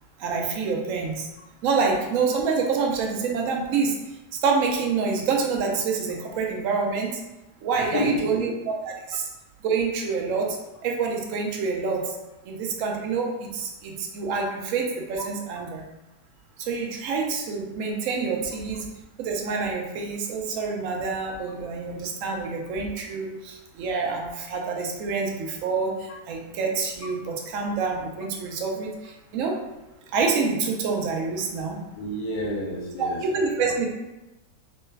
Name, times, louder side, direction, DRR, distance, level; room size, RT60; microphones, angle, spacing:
voice 1, 0.2-1.3 1.6-3.9 4.4-7.2 7.6-9.3 9.6-10.6 10.8-12.0 12.5-15.8 16.6-18.8 19.2-29.6 30.1-31.8 33.0-33.9, right 4 dB, 70° right, 0 dB, 0.8 m, -27 dB
voice 2, 7.7-8.5 32.0-33.7, left 1 dB, 75° left, -2 dB, 1.2 m, -30 dB
3.2 x 2.2 x 3.1 m, 0.99 s
omnidirectional pair, 1.9 m